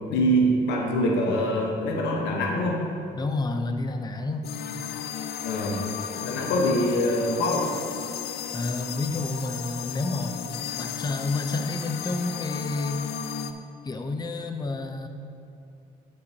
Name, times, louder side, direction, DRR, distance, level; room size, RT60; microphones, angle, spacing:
voice 1, 0.1-2.8 5.4-5.8 6.2-7.8, equal, 90° left, 0 dB, 1.1 m, -24 dB
voice 2, 3.1-4.4 8.5-10.4 10.8-13.1 13.8-15.1, left 2 dB, 25° left, 5 dB, 0.6 m, -29 dB
sound 1, 4.4-13.5, left 8 dB, 70° left, 0.5 m, -34 dB
14.5 x 5.3 x 2.8 m, 2.6 s
supercardioid pair, 65°, 18 cm